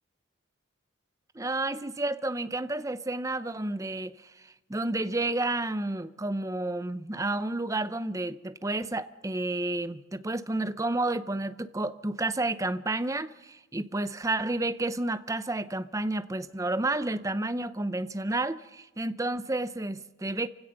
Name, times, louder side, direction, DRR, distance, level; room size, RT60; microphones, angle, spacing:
voice 1, 1.3-4.3 4.7-20.5, right 2 dB, 15° right, 0.6 m, -31 dB
26.5 x 16.0 x 6.7 m
head